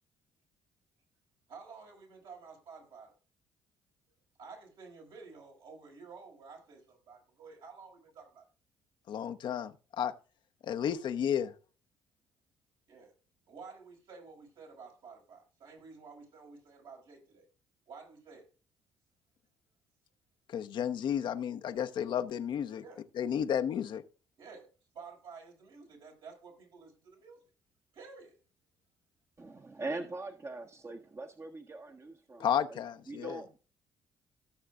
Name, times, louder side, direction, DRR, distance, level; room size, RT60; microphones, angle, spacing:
voice 1, 1.5-3.1 4.4-8.5 12.9-13.1 13.5-17.5 17.9-18.5 22.8-23.0 24.4-27.4 27.9-28.4, right 5 dB, 70° right, 5.6 m, -51 dB
voice 2, 9.1-10.1 10.6-11.5 20.5-22.8 23.1-24.0 32.4-33.4, left 9 dB, 60° left, 1.0 m, -32 dB
voice 3, 29.4-32.8 33.1-33.6, right 2 dB, 30° right, 1.4 m, -42 dB
17.5 x 6.6 x 2.5 m
hypercardioid pair, 60°, 9 cm